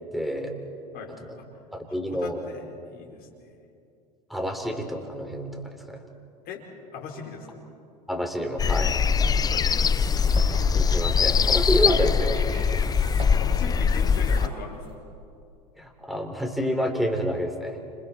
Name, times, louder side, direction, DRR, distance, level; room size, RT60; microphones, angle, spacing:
voice 1, 0.1-0.6 1.2-1.4 1.7-2.4 4.3-6.0 8.1-8.9 10.8-12.4 15.8-17.8, equal, ahead, 4 dB, 3.5 m, -28 dB
voice 2, 0.9-1.5 1.9-2.7 2.9-3.5 6.4-6.7 6.9-7.6 9.1-10.0 13.4-14.8, left 5 dB, 50° left, 1 dB, 4.9 m, -40 dB
sound 1, 8.6-14.5, left 6 dB, 20° left, 0.5 m, -22 dB
sound 2, 9.5-14.9, right 3 dB, 30° right, 6.6 m, -42 dB
29.5 x 27.5 x 4.4 m, 2.5 s
hypercardioid pair, 90°, 20 cm